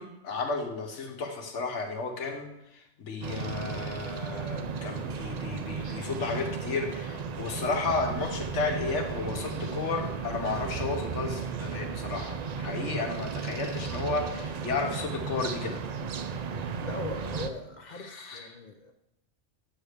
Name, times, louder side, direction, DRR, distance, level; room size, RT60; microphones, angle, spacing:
voice 1, 0.0-2.5 3.0-15.8 18.0-18.5, left 4 dB, 70° left, 3 dB, 1.4 m, -33 dB
sound 1, 3.2-17.5, right 5 dB, 90° right, 0.3 m, -35 dB
sound 2, 9.7-11.6, right 8 dB, 45° right, 0.9 m, -45 dB
voice 2, 16.8-18.9, left 2 dB, 50° left, 6 dB, 0.6 m, -40 dB
8.6 x 3.4 x 6.5 m, 0.84 s
omnidirectional pair, 1.3 m